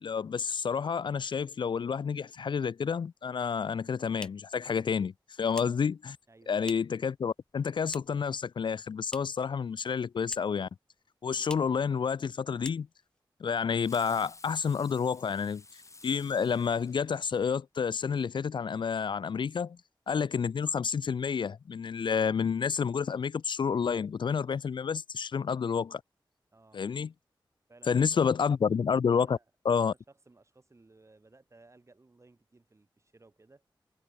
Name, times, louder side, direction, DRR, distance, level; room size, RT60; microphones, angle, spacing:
voice 1, 0.0-5.1 5.4-6.2 6.5-10.7 11.2-12.9 13.4-15.6 16.0-19.8 20.1-26.0 26.7-27.1 27.9-29.4 29.7-29.9, left 6 dB, 70° left, 0.4 m, -29 dB
sound 1, 3.6-7.1 7.3-8.3 8.6-9.5 9.8-10.7 11.0-11.1 11.4-11.8 12.2-12.3 12.6-13.2, left 1 dB, 10° left, 0.6 m, -47 dB
voice 2, 6.3-6.7 26.5-26.8 27.7-28.8 29.1-29.4 29.8-33.6, right 2 dB, 35° right, 3.2 m, -59 dB
Fireworks, 13.7-17.6, left 3 dB, 35° left, 1.1 m, -53 dB
wide cardioid pair, 100°, 9 cm